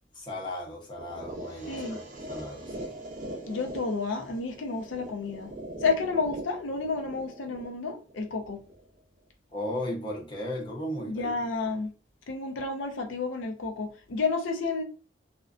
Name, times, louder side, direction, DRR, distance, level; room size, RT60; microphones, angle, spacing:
voice 1, 0.1-3.0 9.5-11.3, left 1 dB, 25° left, 0.6 m, -36 dB
sound 1, 1.0-9.0, right 1 dB, 40° right, 0.5 m, -41 dB
voice 2, 1.7-2.0 3.5-5.5 5.8-8.6 11.1-11.9 12.3-14.8, left 4 dB, 75° left, 0.5 m, -30 dB
2.4 x 2.2 x 2.3 m
head